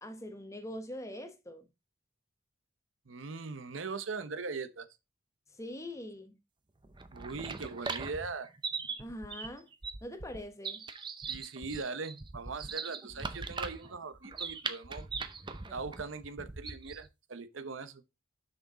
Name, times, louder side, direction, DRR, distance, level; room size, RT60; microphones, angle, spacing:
voice 1, 0.0-1.7 5.5-6.4 9.0-9.7 10.0-10.9, left 1 dB, 15° left, 0.9 m, -43 dB
voice 2, 3.1-4.9 7.1-8.5 11.3-15.1 15.7-18.0, right 4 dB, 75° right, 0.8 m, -40 dB
sound 1, 6.8-17.1, right 4 dB, 25° right, 0.6 m, -40 dB
6.4 x 6.2 x 4.0 m
head